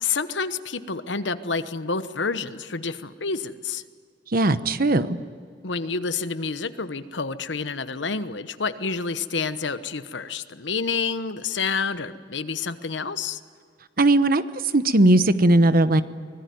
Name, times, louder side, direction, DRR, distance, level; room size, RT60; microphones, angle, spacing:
voice 1, 0.0-3.8 5.6-13.4, left 5 dB, 75° left, 12 dB, 1.1 m, -29 dB
voice 2, 4.3-5.1 14.0-14.4 14.7-16.0, right 2 dB, 50° right, 12 dB, 1.0 m, -18 dB
24.0 x 20.0 x 9.5 m, 2.1 s
head